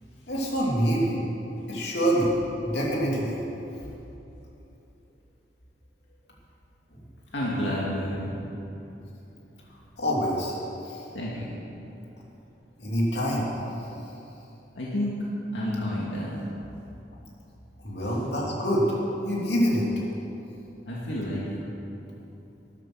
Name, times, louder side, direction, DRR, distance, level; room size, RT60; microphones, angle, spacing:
voice 1, 0.3-1.2 1.7-3.4 10.0-10.6 10.8-11.0 12.8-13.5 17.8-19.0 19.2-19.9, equal, 65° left, -4 dB, 3.0 m, -25 dB
voice 2, 7.3-8.7 11.1-11.4 14.7-15.2 15.5-16.4 20.9-21.4, left 1 dB, 90° left, -6 dB, 2.1 m, -30 dB
13.0 x 11.0 x 6.3 m, 3.0 s
head